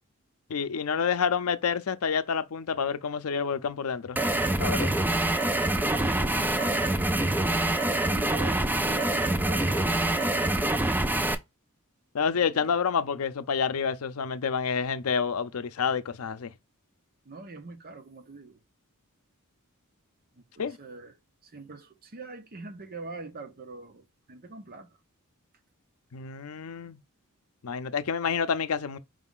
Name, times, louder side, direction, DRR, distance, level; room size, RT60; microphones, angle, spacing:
voice 1, 0.5-4.2 4.6-4.9 12.1-16.5 20.6-20.8 26.1-27.0 27.6-29.0, left 6 dB, 75° left, 0.5 m, -28 dB
sound 1, 4.2-11.4, right 1 dB, 10° right, 0.4 m, -25 dB
voice 2, 5.7-11.3 12.3-12.8 17.2-18.6 20.4-21.1 21.4-25.0, right 3 dB, 45° right, 0.8 m, -43 dB
4.9 x 2.4 x 3.6 m
head